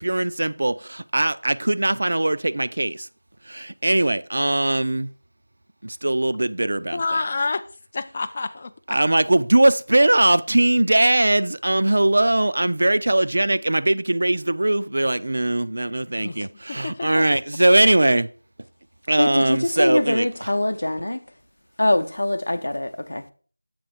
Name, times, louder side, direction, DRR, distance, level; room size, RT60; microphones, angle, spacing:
voice 1, 0.0-3.1 3.5-5.1 5.8-7.0 8.9-18.3 19.1-20.5, right 1 dB, 55° right, 0.3 m, -20 dB
voice 2, 6.9-7.7 7.9-9.0 16.2-16.5 16.8-17.4, left 3 dB, 25° left, 0.3 m, -28 dB
voice 3, 19.2-21.2 21.8-23.3, left 1 dB, 65° left, 0.6 m, -23 dB
7.7 x 4.1 x 4.4 m
figure-of-eight pair, 175°, 0 cm